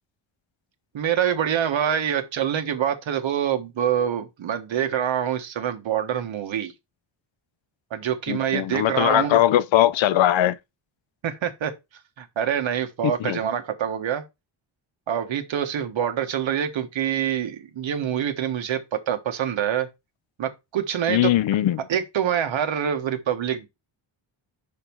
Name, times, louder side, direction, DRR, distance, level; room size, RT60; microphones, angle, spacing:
voice 1, 0.9-6.7 7.9-9.4 11.2-11.7 12.2-14.2 15.1-19.9 20.4-21.3 21.9-23.7, right 9 dB, 70° right, 1.4 m, -25 dB
voice 2, 8.3-10.6 13.0-13.4 21.1-21.8, left 12 dB, 70° left, 0.6 m, -20 dB
5.7 x 5.5 x 4.5 m
wide cardioid pair, 145°, 47 cm